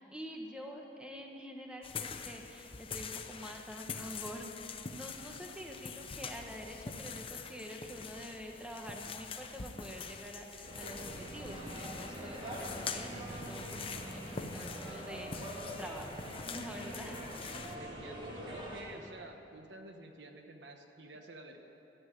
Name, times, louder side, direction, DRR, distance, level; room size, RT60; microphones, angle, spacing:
voice 1, 0.0-16.2 16.4-17.2, equal, 5° right, 1 dB, 1.1 m, -46 dB
sound 1, 1.8-17.8, left 5 dB, 30° left, 0.6 m, -45 dB
sound 2, 10.6-18.8, right 1 dB, 30° right, 2.7 m, -44 dB
voice 2, 17.8-21.6, right 2 dB, 80° right, 4 dB, 1.2 m, -50 dB
13.0 x 8.1 x 9.3 m, 3.0 s
head